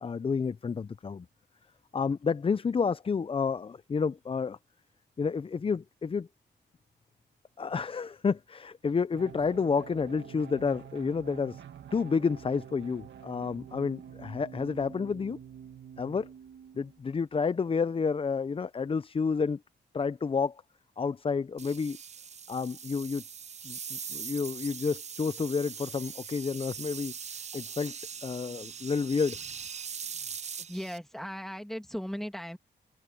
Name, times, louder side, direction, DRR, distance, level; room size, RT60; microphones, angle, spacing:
voice 1, 0.0-1.3 1.9-4.6 5.2-6.3 7.6-11.6 11.9-15.4 16.0-16.3 16.7-19.6 19.9-20.6 21.0-22.0 22.5-23.2 23.6-27.1 27.5-27.9 28.2-29.4, left 5 dB, 30° left, 0.5 m, -30 dB
sound 1, 9.1-17.0, right 8 dB, 85° right, 1.9 m, -47 dB
sound 2, 21.6-31.0, right 7 dB, 40° right, 0.5 m, -41 dB
voice 2, 30.6-32.6, equal, ahead, 2.5 m, -37 dB
cardioid pair, 90°, 18 cm